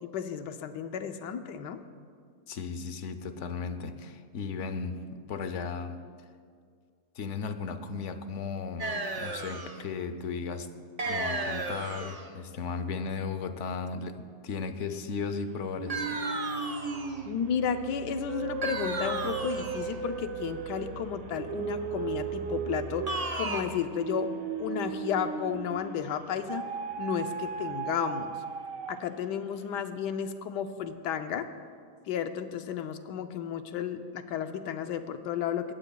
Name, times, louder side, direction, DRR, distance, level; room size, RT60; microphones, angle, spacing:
voice 1, 0.0-1.8 17.3-24.3 24.6-26.7 27.0-28.4 28.9-31.5 32.1-35.7, left 8 dB, 90° left, 8 dB, 1.3 m, -33 dB
voice 2, 2.5-6.0 7.2-10.7 11.1-16.2, left 5 dB, 60° left, 10 dB, 0.8 m, -36 dB
sound 1, 8.8-9.8 11.0-12.3 15.9-17.2 18.6-19.9 23.1-23.6, right 2 dB, 35° right, 0.6 m, -34 dB
sound 2, 15.7-26.0 26.5-29.2, right 5 dB, 60° right, 1.1 m, -36 dB
20.0 x 15.5 x 2.3 m, 2.1 s
omnidirectional pair, 1.8 m